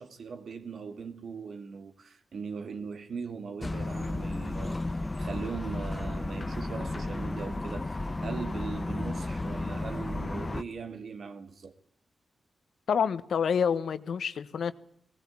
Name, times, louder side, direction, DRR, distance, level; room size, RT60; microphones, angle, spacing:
voice 1, 0.0-11.7, right 5 dB, 65° right, 2.5 m, -40 dB
sound 1, 3.6-10.6, left 2 dB, 25° left, 1.1 m, -33 dB
voice 2, 12.9-14.7, left 7 dB, 75° left, 1.4 m, -28 dB
20.0 x 19.0 x 8.7 m
wide cardioid pair, 100°, 0 cm